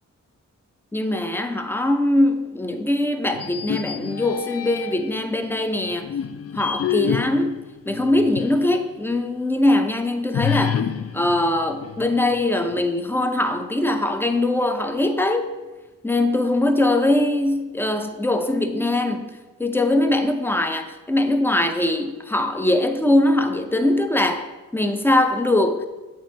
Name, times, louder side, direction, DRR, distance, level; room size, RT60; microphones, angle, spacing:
voice 1, 0.9-6.1 6.5-10.8 11.1-15.5 16.0-19.3 19.6-24.4 24.7-25.9, left 1 dB, 5° left, 7 dB, 0.6 m, -21 dB
sound 1, 3.3-5.2 5.8-8.8 9.1-9.2 10.3-12.4, left 9 dB, 45° left, 0.4 m, -28 dB
7.5 x 2.8 x 5.6 m, 1.2 s
cardioid pair, 45°, 34 cm